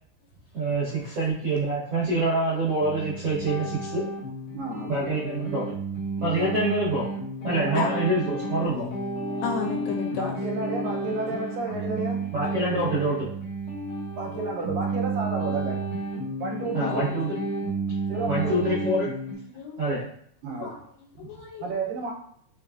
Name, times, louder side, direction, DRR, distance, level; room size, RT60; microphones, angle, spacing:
voice 1, 0.5-4.0 4.9-5.7 6.2-7.0 7.4-8.9 12.3-13.3 16.7-17.3 18.3-19.1 19.8-20.0, right 2 dB, 55° right, -10 dB, 1.9 m, -26 dB
sound 1, 2.8-19.3, right 2 dB, 70° left, 1.3 m, -32 dB
voice 2, 4.5-4.9 6.4-6.5 7.7-7.9 10.2-12.3 14.1-15.8 16.4-17.2 18.1-18.8 20.4-20.7 21.2-21.3 21.6-22.1, right 3 dB, 80° right, 0 dB, 2.2 m, -32 dB
voice 3, 9.3-10.4 14.3-14.4 18.2-18.3 19.5-19.8 20.5-21.7, left 5 dB, 90° left, 0 dB, 2.6 m, -33 dB
5.4 x 2.4 x 2.3 m, 0.65 s
omnidirectional pair, 4.1 m